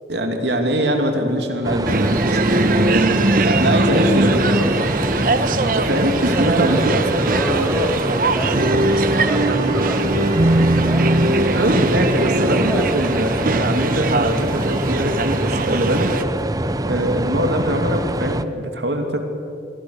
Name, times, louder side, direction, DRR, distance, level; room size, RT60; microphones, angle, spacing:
voice 1, 0.1-4.6 5.3-6.8 11.5-16.1 16.8-19.2, equal, 75° right, 4 dB, 2.9 m, -22 dB
sound 1, 1.6-18.4, right 1 dB, 20° right, 0.6 m, -25 dB
sound 2, 1.9-16.2, right 2 dB, 50° right, 1.1 m, -20 dB
voice 2, 4.3-5.1 6.7-11.2 12.4-13.0, equal, 5° right, 0 dB, 3.5 m, -28 dB
28.5 x 23.0 x 6.6 m, 2.7 s
head